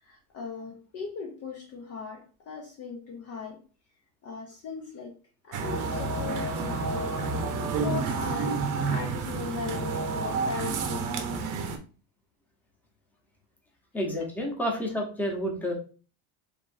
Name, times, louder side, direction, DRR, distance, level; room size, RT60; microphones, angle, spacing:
voice 1, 0.0-3.6 4.2-7.1 7.8-11.5, left 5 dB, 35° left, 0.7 m, -39 dB
sound 1, 5.5-11.8, right 4 dB, 45° right, 0.9 m, -30 dB
voice 2, 13.9-15.7, equal, 5° left, 1.0 m, -30 dB
5.1 x 3.1 x 2.6 m
cardioid pair, 140°, 44 cm